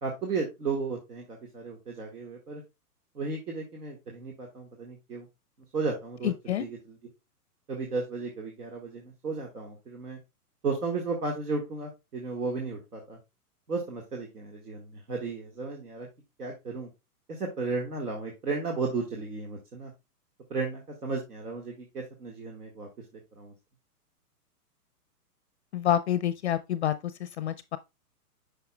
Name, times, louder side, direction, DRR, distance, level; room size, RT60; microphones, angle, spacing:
voice 1, 0.0-2.6 3.2-5.3 5.7-6.8 7.7-10.2 10.6-13.2 13.7-16.1 16.4-16.9 17.3-19.9 20.5-22.9 23.4-23.5, right 4 dB, 75° right, 1.8 m, -34 dB
voice 2, 6.2-6.7 25.7-27.8, left 11 dB, 45° left, 0.5 m, -28 dB
8.2 x 5.7 x 2.3 m
hypercardioid pair, 125°, 47 cm